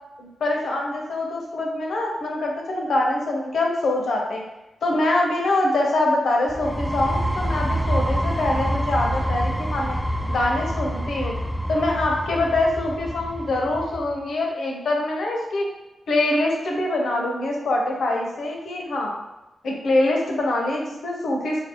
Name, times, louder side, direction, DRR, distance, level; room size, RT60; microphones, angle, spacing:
voice 1, 0.2-4.4 4.8-10.0 10.3-11.3 11.7-15.6 16.1-19.1 19.6-21.6, left 2 dB, 80° left, 0 dB, 0.8 m, -24 dB
sound 1, 6.5-14.1, equal, 5° right, 0.3 m, -27 dB
5.0 x 2.3 x 3.0 m, 0.98 s
cardioid pair, 85°, 0 cm